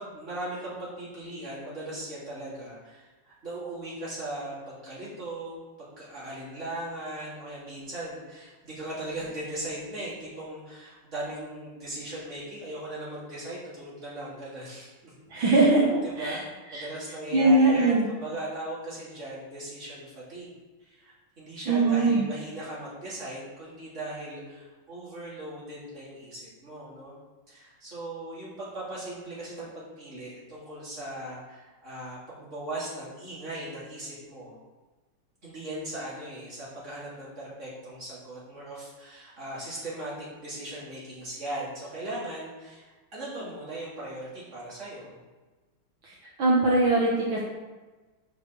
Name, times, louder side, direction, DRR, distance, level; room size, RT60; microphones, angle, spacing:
voice 1, 0.0-15.7 16.0-16.5 16.7-20.5 20.8-27.1 27.5-34.6 35.4-40.1 40.4-45.2, right 1 dB, 30° right, -8 dB, 3.2 m, -38 dB
voice 2, 15.3-16.4 16.7-16.9 17.3-18.1 21.7-22.3 46.4-47.4, right 2 dB, 70° right, -5 dB, 1.9 m, -21 dB
5.7 x 5.7 x 6.5 m, 1.3 s
omnidirectional pair, 2.4 m